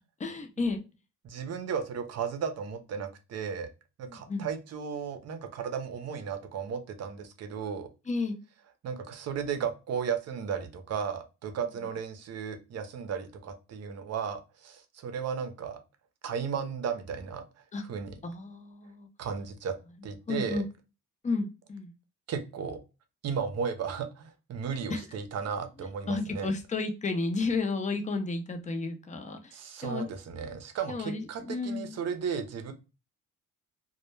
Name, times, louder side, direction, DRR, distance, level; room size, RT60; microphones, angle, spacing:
voice 1, 0.2-0.8 4.1-4.5 8.1-8.4 17.7-17.8 18.2-19.1 20.0-20.6 21.2-21.9 24.9-25.0 26.1-29.6 29.8-30.1 30.9-32.0, left 3 dB, 25° left, 5 dB, 0.5 m, -32 dB
voice 2, 1.2-3.7 4.0-7.9 8.8-15.8 16.2-17.4 17.9-18.1 19.2-19.8 20.0-20.6 22.3-22.8 23.2-26.5 29.5-32.7, right 6 dB, 55° right, 8 dB, 0.6 m, -35 dB
2.2 x 2.1 x 3.0 m, 0.29 s
cardioid pair, 90°, 30 cm